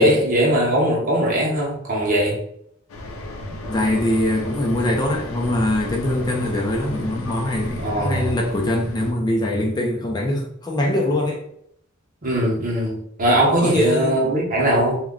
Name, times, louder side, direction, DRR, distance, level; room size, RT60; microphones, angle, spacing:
voice 1, 0.0-2.4 7.8-8.3 12.2-15.0, right 1 dB, 40° right, -2 dB, 0.8 m, -20 dB
sound 1, 2.9-9.1, left 1 dB, 80° left, 0.5 m, -33 dB
voice 2, 3.7-11.4 13.6-14.4, left 1 dB, 20° left, 0 dB, 0.4 m, -23 dB
2.2 x 2.1 x 3.5 m, 0.70 s
head